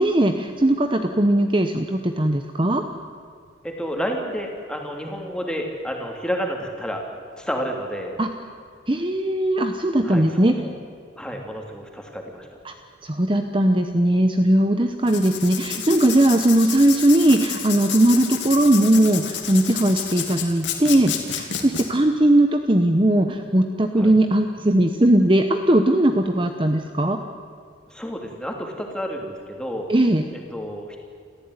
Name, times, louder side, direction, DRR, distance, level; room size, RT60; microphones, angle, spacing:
voice 1, 0.0-2.8 8.2-8.3 8.9-10.5 12.6-12.7 13.0-27.2 29.9-30.2, right 1 dB, 25° right, 6 dB, 0.9 m, -19 dB
voice 2, 3.6-7.1 7.4-8.1 10.0-10.8 11.2-12.5 23.9-24.1 27.9-29.9 30.3-31.0, equal, 5° left, 1 dB, 3.0 m, -30 dB
Writing, 15.0-21.8, left 9 dB, 65° left, 2.9 m, -30 dB
28.0 x 14.5 x 9.7 m, 2.2 s
head